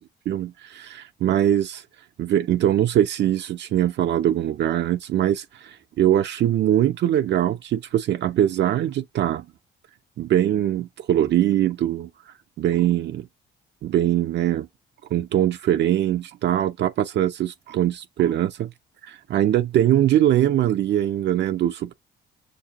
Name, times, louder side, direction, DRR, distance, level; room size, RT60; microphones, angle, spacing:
voice 1, 0.3-1.8 2.2-9.4 10.2-12.1 12.6-13.3 13.8-14.7 15.1-18.7 19.0-21.9, right 11 dB, 65° right, 0.5 m, -22 dB
6.5 x 2.7 x 2.8 m
cardioid pair, 90°, 20 cm